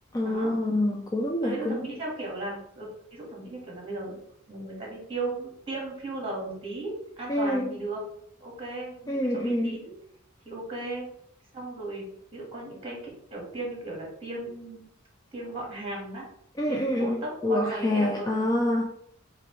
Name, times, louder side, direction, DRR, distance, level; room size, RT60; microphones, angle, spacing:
voice 1, 0.1-1.8 7.3-7.7 9.1-9.8 16.6-18.9, left 1 dB, 15° left, 0 dB, 0.4 m, -26 dB
voice 2, 1.4-2.9 3.1-4.2 4.5-8.0 8.4-9.9 10.4-11.1 11.5-13.0 13.3-14.8 15.3-16.3 16.7-18.3, right 2 dB, 25° right, -2 dB, 1.6 m, -36 dB
5.8 x 2.6 x 3.1 m, 0.71 s
head